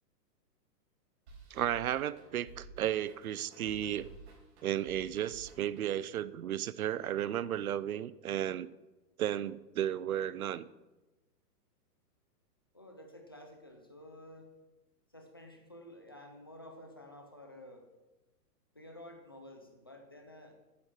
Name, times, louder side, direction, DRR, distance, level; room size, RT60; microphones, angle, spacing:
sound 1, 1.3-6.2, right 3 dB, 40° right, 4.7 m, -54 dB
voice 1, 1.5-4.1 4.6-8.7 9.2-10.6, right 11 dB, 60° right, 18 dB, 0.7 m, -34 dB
voice 2, 12.7-14.5 15.1-17.8 18.7-20.5, left 1 dB, 15° left, 3 dB, 0.5 m, -51 dB
11.5 x 9.7 x 5.7 m, 1.1 s
hypercardioid pair, 170°, 50 cm